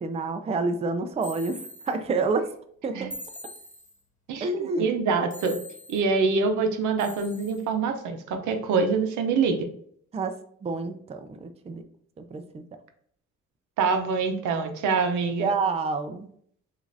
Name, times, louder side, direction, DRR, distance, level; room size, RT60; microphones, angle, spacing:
voice 1, 0.0-1.6 1.9-2.4 2.8-3.1 4.4-4.9 10.1-10.3 10.6-11.8 12.2-12.6 15.4-16.3, right 4 dB, 20° right, 7 dB, 0.4 m, -28 dB
sound 1, 1.2-1.9 3.1-4.0 5.3-6.0 7.0-7.6, left 1 dB, 25° left, 1.5 m, -42 dB
voice 2, 4.3-5.6 5.9-9.7 13.8-15.5, right 4 dB, 80° right, 7 dB, 0.7 m, -25 dB
6.2 x 2.5 x 2.6 m, 0.64 s
cardioid pair, 90°, 30 cm